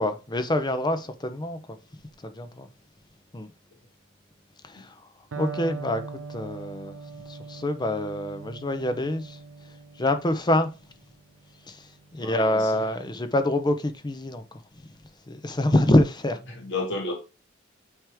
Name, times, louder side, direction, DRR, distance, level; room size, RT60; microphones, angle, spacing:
voice 1, 0.0-1.6 2.2-2.7 3.3-3.5 4.6-5.0 5.4-6.0 6.3-6.9 7.3-9.4 10.0-10.7 11.7-14.4 14.7-15.0 15.3-16.4, left 1 dB, 20° left, 0.7 m, -26 dB
Electric guitar, 5.3-13.1, right 4 dB, 75° right, 0.7 m, -41 dB
voice 2, 12.2-12.8 16.5-17.1, left 3 dB, 60° left, 1.9 m, -32 dB
9.0 x 3.1 x 3.5 m
head